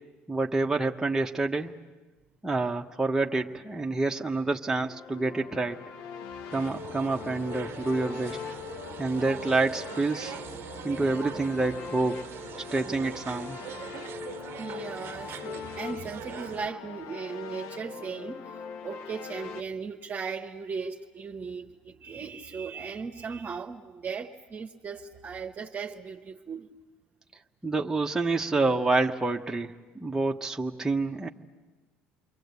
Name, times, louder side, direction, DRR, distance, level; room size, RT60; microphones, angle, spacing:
voice 1, 0.3-1.7 2.4-5.9 6.5-8.4 9.0-10.3 10.8-12.3 12.7-13.6 27.6-31.3, right 3 dB, 10° right, 1 dB, 1.2 m, -28 dB
sound 1, 4.8-19.6, left 7 dB, 70° left, 1.2 m, -41 dB
sound 2, 6.5-16.7, right 10 dB, 55° right, 0.8 m, -42 dB
voice 2, 14.6-26.7, right 5 dB, 35° right, 2 dB, 1.2 m, -37 dB
29.0 x 23.0 x 8.3 m, 1.2 s
hypercardioid pair, 75°, 5 cm